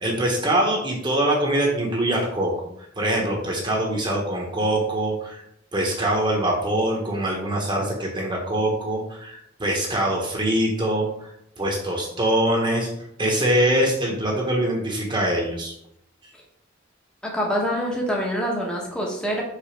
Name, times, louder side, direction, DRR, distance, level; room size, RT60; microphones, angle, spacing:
voice 1, 0.0-2.5 3.0-5.4 5.7-11.1 11.6-12.9 13.2-15.7, right 1 dB, 25° right, -1 dB, 1.2 m, -23 dB
voice 2, 17.2-19.4, equal, 5° left, -2 dB, 1.1 m, -25 dB
5.1 x 4.0 x 5.8 m, 0.73 s
head